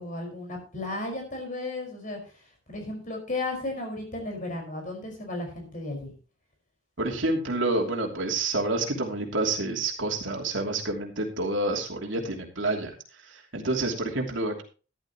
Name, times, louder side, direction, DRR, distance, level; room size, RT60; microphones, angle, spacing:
voice 1, 0.0-2.2 2.7-6.1, left 2 dB, 40° left, 2 dB, 5.1 m, -34 dB
voice 2, 7.0-12.9 13.3-14.6, right 2 dB, 75° right, 1 dB, 2.9 m, -28 dB
14.0 x 11.0 x 3.0 m, 0.35 s
head